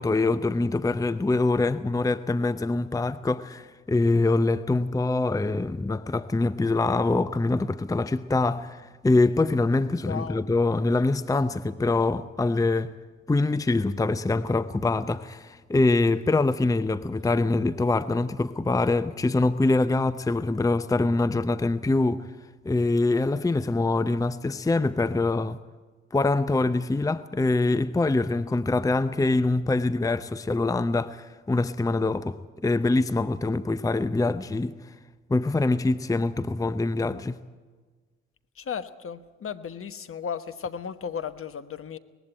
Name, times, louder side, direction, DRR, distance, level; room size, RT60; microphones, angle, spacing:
voice 1, 0.0-12.9 13.3-22.3 22.6-25.6 26.1-34.9 35.3-37.4, left 2 dB, 10° left, 0.7 m, -24 dB
voice 2, 10.1-10.4 38.6-42.0, left 7 dB, 45° left, 1.2 m, -35 dB
19.5 x 15.5 x 9.0 m
hypercardioid pair, 45°, 30 cm